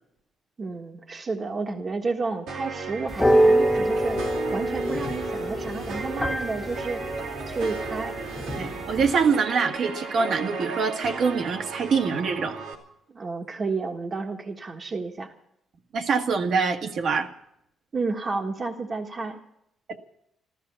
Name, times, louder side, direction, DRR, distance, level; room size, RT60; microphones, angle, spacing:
voice 1, 0.6-4.2 4.5-7.0 7.5-8.1 13.1-15.3 17.9-19.4, right 4 dB, 40° right, 1 dB, 1.5 m, -31 dB
sound 1, 2.5-12.7, right 4 dB, 90° right, 2.7 m, -35 dB
sound 2, 3.1-9.1, right 1 dB, 10° left, 1.5 m, -25 dB
voice 2, 8.5-12.6 15.9-17.3 19.9-20.0, right 5 dB, 60° right, 5 dB, 1.6 m, -24 dB
14.0 x 13.5 x 6.9 m, 0.76 s
cardioid pair, 90°, 0 cm